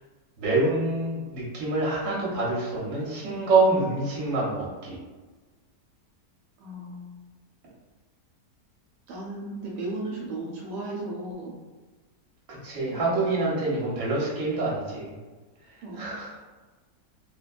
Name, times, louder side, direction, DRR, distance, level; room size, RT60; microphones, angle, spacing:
voice 1, 0.4-5.0 12.5-15.1 15.7-16.4, right 2 dB, 55° right, -5 dB, 1.0 m, -26 dB
voice 2, 6.6-7.2 9.1-11.6 12.7-13.1 15.8-16.1, right 2 dB, 80° right, -4 dB, 1.1 m, -35 dB
2.8 x 2.2 x 2.3 m, 1.3 s
omnidirectional pair, 1.8 m